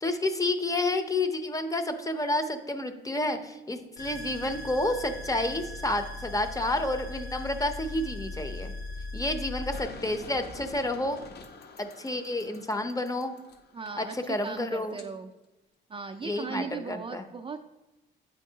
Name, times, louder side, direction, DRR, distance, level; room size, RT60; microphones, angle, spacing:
voice 1, 0.0-8.7 9.1-11.2 11.8-13.3 14.0-15.0 16.2-17.2, left 2 dB, 15° left, 8 dB, 0.6 m, -30 dB
sound 1, 4.0-9.8, left 2 dB, 85° left, 1.7 m, -39 dB
sound 2, 9.7-15.1, left 3 dB, 55° left, 0.8 m, -48 dB
voice 2, 13.7-15.3 15.9-17.6, right 5 dB, 25° right, 5 dB, 0.3 m, -37 dB
8.1 x 4.5 x 2.8 m, 1.0 s
cardioid pair, 90°, 20 cm